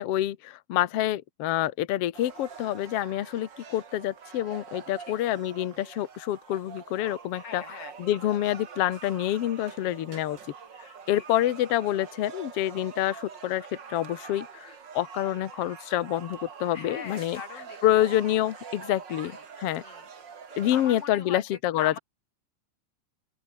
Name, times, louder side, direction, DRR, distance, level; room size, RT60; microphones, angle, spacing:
voice 1, 0.0-7.6 8.0-10.4 10.8-17.4 17.8-19.8 20.6-22.0, left 13 dB, 70° left, 1.4 m, -27 dB
sound 1, 2.1-21.0, right 6 dB, 40° right, 2.0 m, -45 dB
voice 2, 7.3-7.9 11.1-11.2 16.7-18.1 19.2-19.4 19.8-20.0 20.7-21.4 21.7-22.0, left 6 dB, 50° left, 2.2 m, -41 dB
open air
omnidirectional pair, 4.5 m